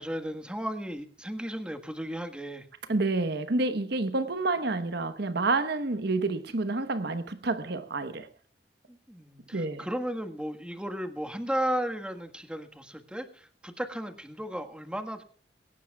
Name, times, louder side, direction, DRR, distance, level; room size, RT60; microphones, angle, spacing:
voice 1, 0.0-2.7 8.9-15.2, equal, 5° right, 1.5 m, -34 dB
voice 2, 2.9-8.3 9.5-9.9, right 3 dB, 65° right, 1.1 m, -29 dB
21.5 x 18.0 x 2.3 m
head